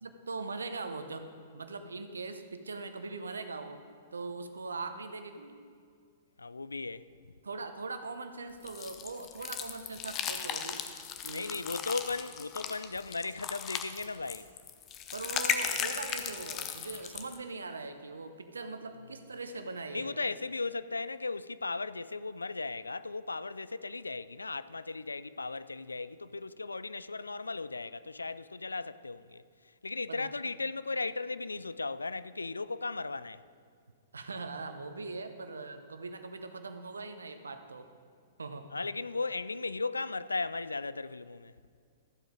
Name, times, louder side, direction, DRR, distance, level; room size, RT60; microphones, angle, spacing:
voice 1, 0.0-3.8 4.1-5.6 7.4-10.8 11.2-11.6 15.1-20.2 30.1-30.3 34.1-37.9 38.4-38.7, right 3 dB, 75° right, 0.8 m, -41 dB
voice 2, 6.4-7.0 11.3-14.5 19.9-29.4 29.8-33.4 38.7-41.5, left 3 dB, 80° left, 0.3 m, -36 dB
sound 1, 8.7-17.4, left 8 dB, 30° left, 0.8 m, -37 dB
14.0 x 7.7 x 5.0 m
figure-of-eight pair, 110°, 0 cm